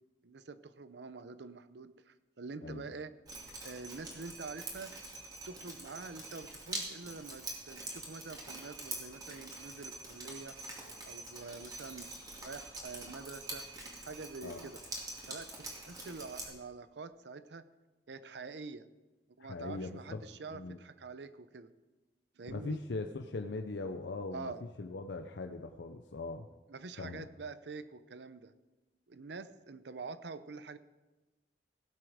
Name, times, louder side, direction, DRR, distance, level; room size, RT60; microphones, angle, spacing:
voice 1, 0.2-3.1 3.6-4.9 5.5-10.6 11.1-12.1 12.4-13.7 14.0-14.8 15.3-17.6 18.1-18.9 19.4-21.7 22.4-22.8 24.3-24.6 26.7-28.5 29.1-30.8, right 4 dB, 75° right, 13 dB, 0.6 m, -46 dB
Drip, 3.3-16.5, right 2 dB, 20° right, 2.5 m, -45 dB
voice 2, 19.4-20.2 20.5-20.8 22.5-24.5 24.8-26.5 27.0-27.3, left 3 dB, 85° left, 6 dB, 0.6 m, -40 dB
17.0 x 7.8 x 5.0 m, 1.2 s
head